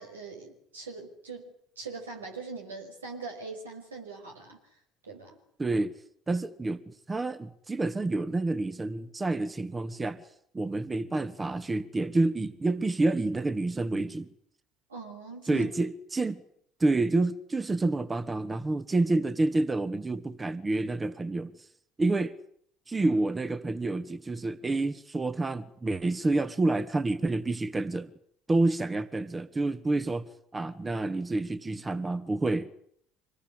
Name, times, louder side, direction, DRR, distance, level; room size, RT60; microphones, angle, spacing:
voice 1, 0.0-4.6 5.0-5.4 14.9-15.7, right 4 dB, 85° right, 5.6 m, -42 dB
voice 2, 5.6-5.9 6.3-10.2 10.5-14.3 15.5-16.4 16.8-21.5 22.0-22.3 22.9-28.1 28.5-32.7, right 2 dB, 20° right, 1.7 m, -28 dB
26.0 x 20.0 x 9.7 m
figure-of-eight pair, 60°, 0 cm